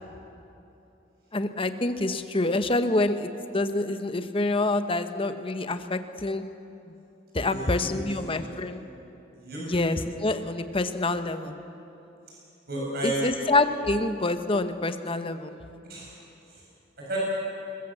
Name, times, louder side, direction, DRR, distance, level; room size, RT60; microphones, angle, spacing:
voice 1, 1.3-6.4 7.3-8.8 9.6-11.6 13.0-15.5, left 2 dB, 25° left, 9 dB, 0.9 m, -27 dB
voice 2, 7.4-7.9 8.2-8.6 9.4-9.6 12.7-13.3 15.9-16.1 17.1-17.2, right 1 dB, 50° right, -5 dB, 7.3 m, -32 dB
21.5 x 21.0 x 7.6 m, 2.9 s
head